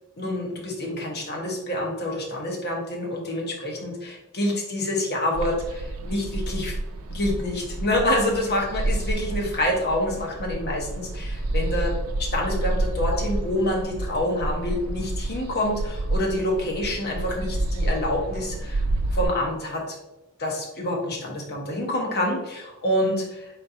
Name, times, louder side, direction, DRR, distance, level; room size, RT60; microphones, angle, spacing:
voice 1, 0.2-6.7 7.1-11.9 12.2-18.8 19.1-20.0 20.4-23.5, left 1 dB, 50° left, 0 dB, 1.1 m, -27 dB
sound 1, 5.3-19.2, right 1 dB, 80° right, 0.6 m, -29 dB
4.5 x 4.3 x 2.7 m, 0.99 s
head